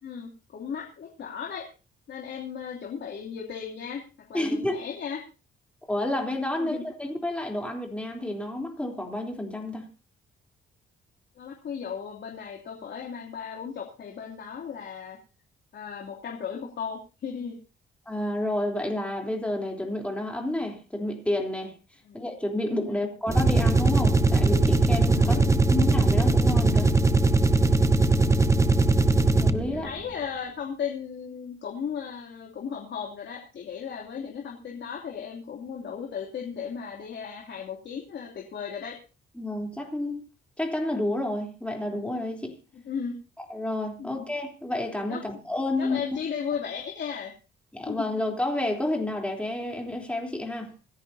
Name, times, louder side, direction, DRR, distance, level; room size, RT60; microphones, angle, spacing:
voice 1, 0.0-1.7 2.1-4.0 4.3-5.2 6.6-6.8 11.3-15.2 15.7-17.6 22.0-22.2 22.9-23.1 25.2-25.5 29.7-39.0 42.9-43.1 44.0-44.2 45.1-45.2 45.8-47.3 47.9-48.1, left 7 dB, 60° left, 2.9 m, -36 dB
voice 2, 4.3-4.8 5.9-9.9 18.0-21.7 22.1-26.9 29.4-29.9 39.4-40.2 40.6-42.5 43.5-46.0 47.7-50.7, left 1 dB, 5° left, 3.5 m, -30 dB
sound 1, 23.3-29.8, right 3 dB, 15° right, 1.1 m, -20 dB
26.5 x 10.5 x 2.8 m
cardioid pair, 90°, 20 cm